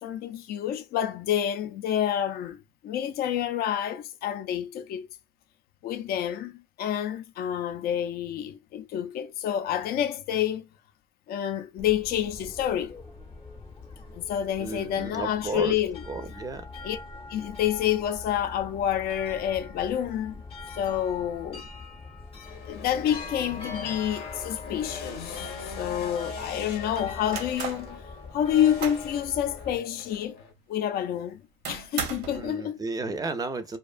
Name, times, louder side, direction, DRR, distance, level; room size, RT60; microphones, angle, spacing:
voice 1, 0.0-2.6 2.8-5.1 5.8-10.7 11.3-12.9 14.1-16.0 16.8-17.0 17.3-20.4 20.8-21.6 22.7-28.0 28.3-30.4 30.7-31.4 31.7-32.8, left 10 dB, 65° left, 0.4 m, -28 dB
sound 1, 11.8-29.8, left 4 dB, 35° left, 0.7 m, -43 dB
voice 2, 14.6-15.7 16.1-16.7 21.5-21.7 32.4-33.8, right 3 dB, 20° right, 0.4 m, -33 dB
sound 2, 22.4-30.5, left 5 dB, 85° left, 0.8 m, -41 dB
sound 3, 25.3-26.0 26.9-27.9 28.4-29.1 29.6-29.7 30.1-30.2 31.6-32.5, right 6 dB, 85° right, 0.8 m, -37 dB
2.5 x 2.2 x 2.4 m
cardioid pair, 110°, 17 cm